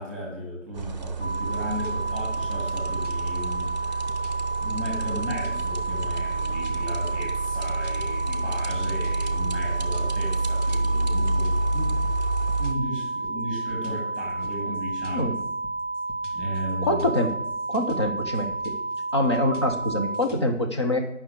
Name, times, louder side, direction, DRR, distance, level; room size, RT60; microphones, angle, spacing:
voice 1, 0.0-4.0 4.6-12.0 12.6-15.3 16.3-17.1, equal, 5° left, -4 dB, 2.0 m, -34 dB
sound 1, 0.7-12.7, right 3 dB, 35° right, 0.7 m, -29 dB
sound 2, 1.2-20.2, right 2 dB, 90° left, 3.9 m, -31 dB
sound 3, 1.2-20.4, equal, 65° left, 2.3 m, -45 dB
voice 2, 16.8-17.3 17.7-18.7 19.1-21.0, left 1 dB, 20° left, 4 dB, 0.7 m, -25 dB
9.2 x 5.7 x 6.7 m, 0.79 s
figure-of-eight pair, 155°, 39 cm